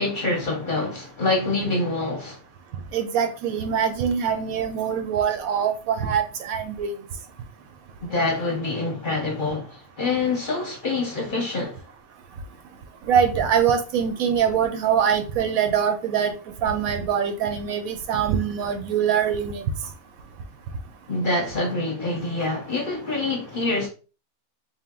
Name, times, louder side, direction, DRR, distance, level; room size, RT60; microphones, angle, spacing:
voice 1, 0.0-2.4 8.0-11.8 21.1-23.9, left 2 dB, 40° left, 0.9 m, -26 dB
voice 2, 2.9-6.9 13.0-16.3 16.6-19.7, right 8 dB, 70° right, 1.0 m, -23 dB
3.5 x 2.5 x 3.7 m
omnidirectional pair, 1.6 m